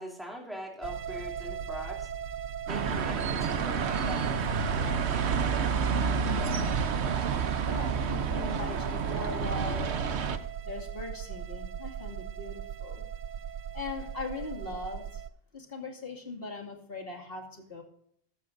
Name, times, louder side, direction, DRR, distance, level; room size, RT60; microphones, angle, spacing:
voice 1, 0.0-2.1 2.7-5.2, equal, ahead, -1 dB, 3.0 m, -42 dB
sound 1, 0.8-15.3, right 8 dB, 55° right, 0.6 m, -39 dB
sound 2, 2.7-10.4, right 5 dB, 85° right, 1.2 m, -29 dB
voice 2, 7.6-10.0 10.6-13.0 13.7-15.2 15.5-17.8, left 3 dB, 60° left, 2 dB, 2.6 m, -39 dB
14.0 x 12.5 x 2.6 m, 0.67 s
omnidirectional pair, 1.1 m